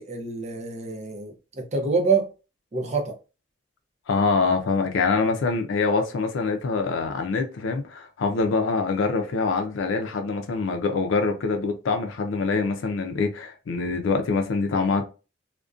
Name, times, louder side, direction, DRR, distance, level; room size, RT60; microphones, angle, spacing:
voice 1, 0.0-2.3 2.7-3.2, right 4 dB, 35° right, 0.6 m, -26 dB
voice 2, 4.1-15.0, left 4 dB, 85° left, 0.4 m, -24 dB
2.4 x 2.1 x 2.4 m
head